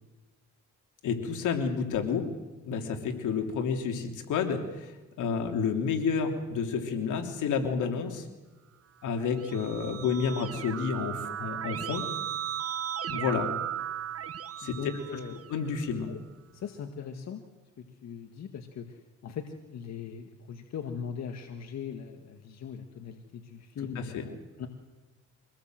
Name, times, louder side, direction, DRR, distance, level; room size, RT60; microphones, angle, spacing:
voice 1, 1.0-2.2 2.6-4.9 5.2-8.2 9.0-12.0 13.1-13.5 14.6-14.7 15.5-16.1 23.9-24.2, left 6 dB, 80° left, 4 dB, 3.2 m, -30 dB
Keyboard (musical), 9.1-15.8, right 9 dB, 50° right, 1.1 m, -36 dB
voice 2, 14.6-15.4 16.1-16.2 16.5-17.4 17.8-24.7, left 7 dB, 60° left, 5 dB, 2.0 m, -40 dB
24.5 x 18.5 x 7.8 m, 1.2 s
cardioid pair, 90°, 30 cm